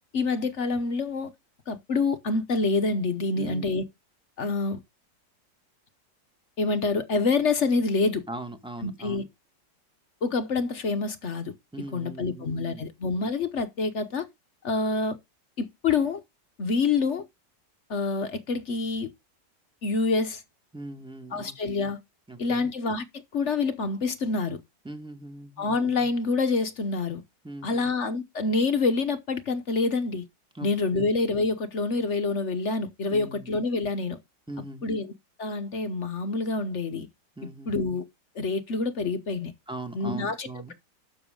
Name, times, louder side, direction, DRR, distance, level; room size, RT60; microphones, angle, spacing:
voice 1, 0.1-1.3 1.7-3.8 4.4-4.8 6.6-8.2 8.8-9.2 10.2-11.5 11.9-14.3 14.6-15.2 15.6-16.2 16.6-17.3 17.9-19.1 19.8-20.4 21.3-22.0 22.4-23.0 23.3-24.6 25.6-27.2 27.6-30.3 30.6-34.2 34.8-35.1 35.4-37.1 37.7-38.0 38.3-39.5 39.9-40.7, left 3 dB, 50° left, 1.0 m, -27 dB
voice 2, 3.3-3.7 8.3-9.3 11.7-12.8 20.7-21.6 22.3-22.7 24.8-25.7 27.4-27.9 30.5-31.1 33.1-33.5 34.5-34.9 37.4-37.8 39.7-40.7, right 2 dB, 5° right, 1.4 m, -40 dB
12.0 x 7.0 x 3.7 m
omnidirectional pair, 2.0 m